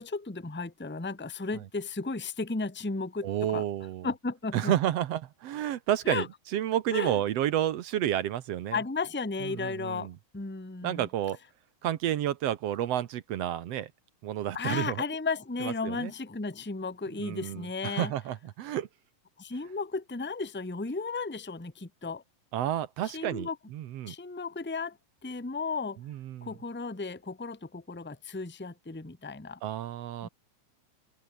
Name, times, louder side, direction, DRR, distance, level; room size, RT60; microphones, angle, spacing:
voice 1, 0.0-3.6 4.0-4.7 6.0-6.3 6.9-7.2 8.7-10.1 10.3-11.1 14.5-18.1 19.4-22.2 23.1-23.6 24.0-25.0 25.2-26.0 26.4-29.6 30.2-30.3, left 4 dB, 15° left, 0.4 m, -34 dB
voice 2, 3.2-4.1 4.5-6.2 6.5-8.8 9.4-10.1 10.8-11.4 11.8-13.9 14.2-15.0 15.6-16.1 17.2-18.9 22.5-24.2 26.1-26.5 29.6-30.3, right 11 dB, 65° right, 1.8 m, -30 dB
open air
omnidirectional pair, 3.5 m